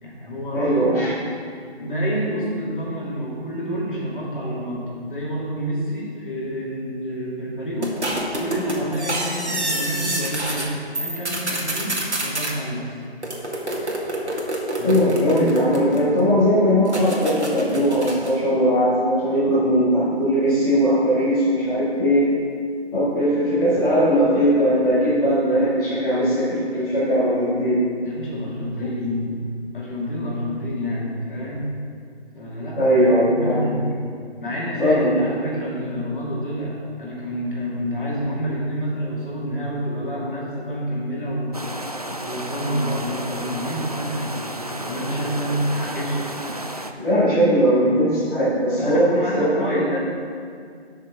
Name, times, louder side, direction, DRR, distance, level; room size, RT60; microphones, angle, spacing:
voice 1, 0.0-1.0 1.8-8.0 8.4-12.9 14.8-15.1 28.0-29.4 29.7-31.7 32.3-33.9 34.4-41.6 42.2-46.3 48.7-50.0, equal, 50° left, -5 dB, 2.6 m, -28 dB
voice 2, 0.5-1.1 14.8-22.2 22.9-27.8 32.8-33.7 34.8-35.1 47.0-49.9, equal, 5° left, -16 dB, 1.9 m, -19 dB
sound 1, 7.8-10.7 10.9-12.5 13.2-16.2 16.9-18.4, right 1 dB, 80° right, 2.2 m, -27 dB
sound 2, 41.5-46.9, right 1 dB, 35° right, 0.4 m, -32 dB
12.5 x 6.4 x 3.8 m, 2.2 s
figure-of-eight pair, 160°, 33 cm